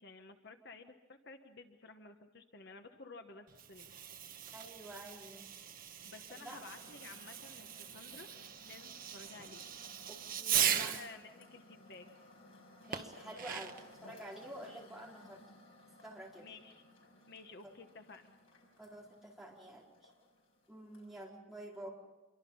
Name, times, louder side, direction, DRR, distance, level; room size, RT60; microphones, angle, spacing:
voice 1, 0.0-3.9 6.0-8.3 8.6-9.6 10.5-12.1 16.4-16.8 17.3-18.4, left 3 dB, 55° left, 6 dB, 1.2 m, -53 dB
Fireworks, 3.5-11.2 12.9-13.9, right 9 dB, 45° right, 1.1 m, -39 dB
voice 2, 4.5-5.5 6.3-6.7 10.1-11.0 12.9-15.4 16.0-16.5 17.6-17.7 18.8-20.1 20.7-21.9, right 1 dB, ahead, -4 dB, 4.4 m, -49 dB
sound 1, 6.4-21.3, left 1 dB, 75° left, 5.9 m, -60 dB
26.5 x 23.5 x 5.5 m, 1.2 s
head